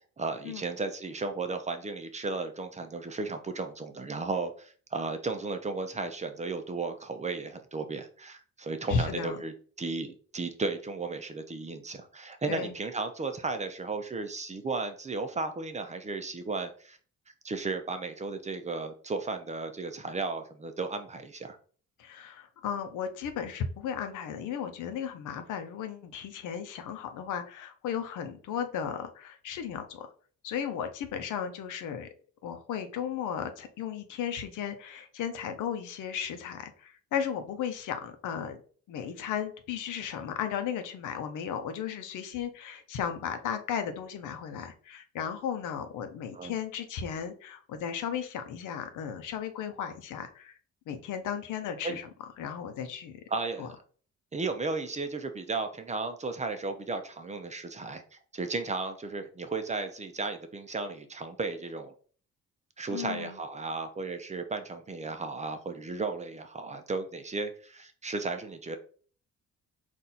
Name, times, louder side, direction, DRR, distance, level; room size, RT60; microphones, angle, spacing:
voice 1, 0.2-17.0 17.4-21.6 46.3-46.6 51.8-52.0 53.3-53.8 54.3-61.9 62.8-68.8, right 3 dB, 25° right, 7 dB, 0.6 m, -34 dB
voice 2, 8.9-9.4 12.5-12.7 22.0-30.1 30.4-32.1 32.4-38.6 38.9-50.6 50.9-52.1 52.4-53.2 53.6-53.7 62.9-63.3, left 8 dB, 85° left, 8 dB, 0.7 m, -35 dB
4.2 x 2.6 x 4.0 m, 0.44 s
cardioid pair, 90°, 30 cm